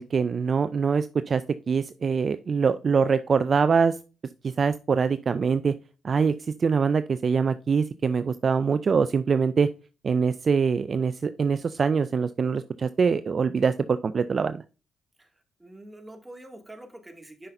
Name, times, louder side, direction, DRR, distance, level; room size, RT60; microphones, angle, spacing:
voice 1, 0.0-4.0 4.4-5.7 6.0-9.7 10.0-14.6, right 5 dB, 50° right, 13 dB, 0.4 m, -24 dB
voice 2, 15.2-17.5, right 1 dB, 20° right, 4 dB, 2.2 m, -46 dB
11.0 x 5.6 x 2.6 m, 0.33 s
hypercardioid pair, 50°, 0 cm